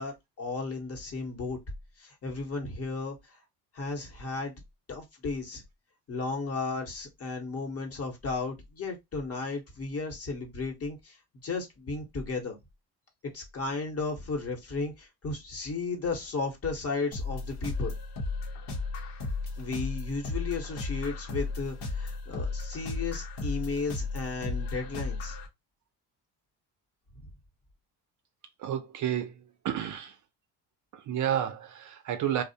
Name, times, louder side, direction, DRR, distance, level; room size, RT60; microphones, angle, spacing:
voice 1, 0.0-1.6 2.0-3.4 3.7-4.6 4.9-5.6 6.1-11.2 11.4-12.6 13.2-17.9 19.6-25.4, left 3 dB, 35° left, 0.9 m, -34 dB
sound 1, 17.1-25.5, left 3 dB, 75° left, 0.8 m, -35 dB
voice 2, 28.6-30.1 30.9-32.4, right 10 dB, 45° right, 0.5 m, -31 dB
2.6 x 2.0 x 2.6 m
cardioid pair, 100°, 41 cm